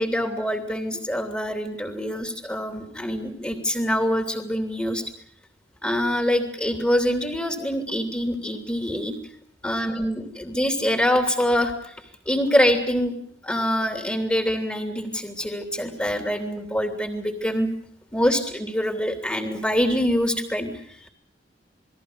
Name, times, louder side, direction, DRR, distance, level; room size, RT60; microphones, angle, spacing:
voice 1, 0.0-5.1 5.8-9.1 9.6-11.9 12.3-13.2 13.4-17.7 18.1-21.1, equal, 10° left, 5 dB, 3.0 m, -25 dB
29.0 x 21.0 x 6.8 m, 0.68 s
head